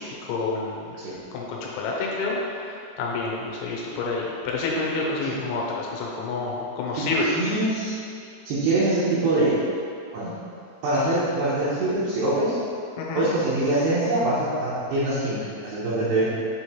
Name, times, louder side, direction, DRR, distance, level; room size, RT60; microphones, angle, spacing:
voice 1, 0.0-1.0 1.3-7.6 12.9-13.3, left 3 dB, 85° left, -3 dB, 3.2 m, -28 dB
voice 2, 7.3-8.0 8.5-9.6 10.1-10.3 10.8-12.6 13.1-16.3, right 2 dB, 75° right, -8 dB, 2.5 m, -24 dB
7.9 x 3.2 x 4.2 m, 2.5 s
omnidirectional pair, 5.3 m